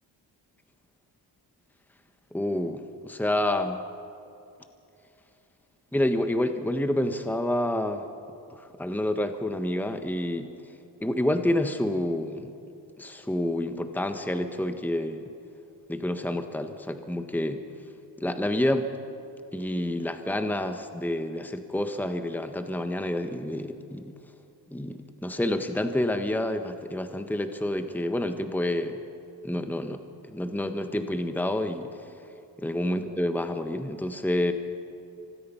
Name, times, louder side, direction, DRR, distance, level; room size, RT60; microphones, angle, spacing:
voice 1, 2.3-3.8 5.9-8.0 8.5-10.5 11.0-12.5 13.0-15.3 15.9-17.6 18.2-18.9 19.5-24.1 24.7-29.0 29.4-31.9 32.6-34.5, left 1 dB, 5° left, 7 dB, 1.4 m, -28 dB
25.0 x 18.0 x 5.7 m, 2.7 s
cardioid pair, 60°, 47 cm